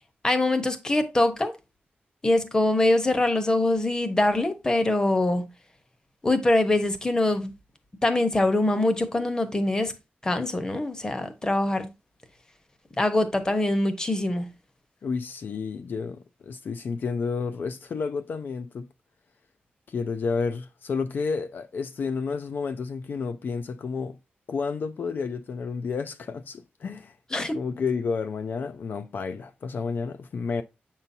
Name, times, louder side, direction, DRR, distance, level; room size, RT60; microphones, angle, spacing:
voice 1, 0.2-1.5 2.2-5.5 6.2-7.5 8.0-10.0 10.2-11.9 13.0-14.5 27.3-27.6, left 2 dB, 20° left, 0.9 m, -23 dB
voice 2, 15.0-18.9 19.9-24.2 24.5-30.6, left 5 dB, 60° left, 0.4 m, -31 dB
7.9 x 5.6 x 2.7 m
wide cardioid pair, 180°, 4 cm